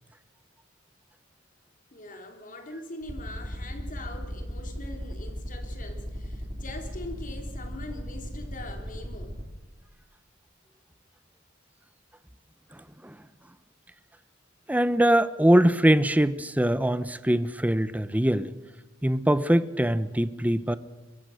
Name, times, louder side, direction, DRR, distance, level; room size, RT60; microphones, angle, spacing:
voice 1, 1.9-9.4, left 2 dB, 40° left, 5 dB, 3.3 m, -42 dB
sound 1, 3.0-9.4, equal, 35° right, 3.8 m, -35 dB
voice 2, 12.7-13.2 14.7-18.5 19.0-20.8, right 1 dB, 10° right, 14 dB, 0.8 m, -23 dB
23.5 x 22.0 x 6.4 m, 1.1 s
head